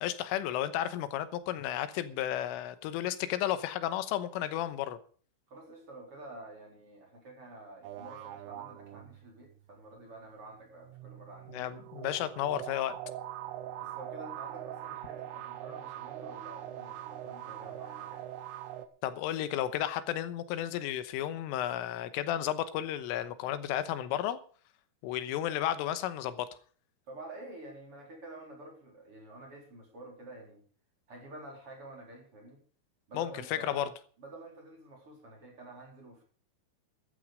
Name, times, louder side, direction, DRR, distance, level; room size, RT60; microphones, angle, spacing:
voice 1, 0.0-5.0 11.5-13.0 19.0-24.4 25.0-26.5 33.2-33.9, left 12 dB, 85° left, 12 dB, 3.5 m, -33 dB
voice 2, 5.5-11.8 13.8-18.3 27.1-30.6 31.1-32.6 33.1-33.9 34.2-36.2, right 2 dB, 30° right, 0 dB, 4.3 m, -49 dB
sound 1, 7.8-9.5 10.8-18.9, right 12 dB, 75° right, 3.3 m, -42 dB
14.0 x 12.0 x 5.0 m, 0.44 s
omnidirectional pair, 5.7 m